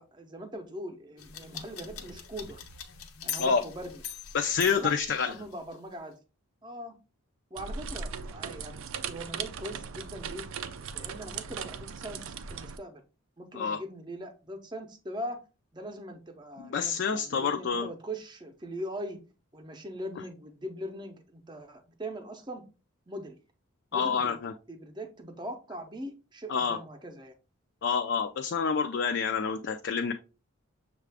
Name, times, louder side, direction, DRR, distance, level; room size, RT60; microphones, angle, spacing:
voice 1, 0.0-2.6 3.2-4.0 4.6-4.9 5.3-6.2 6.6-6.9 7.5-10.5 10.9-13.0 13.4-15.4 15.7-19.2 19.5-22.6 23.1-23.4 23.9-24.4 24.7-27.3, equal, 20° right, 6 dB, 0.6 m, -41 dB
sound 1, 1.2-5.7, left 7 dB, 85° left, 0.7 m, -41 dB
voice 2, 4.3-5.3 13.5-13.8 16.6-17.9 23.9-24.5 26.5-26.8 27.8-30.1, left 6 dB, 55° left, 5 dB, 0.4 m, -28 dB
sound 2, 7.6-12.8, right 6 dB, 70° right, 0.4 m, -38 dB
6.5 x 2.4 x 3.4 m, 0.32 s
head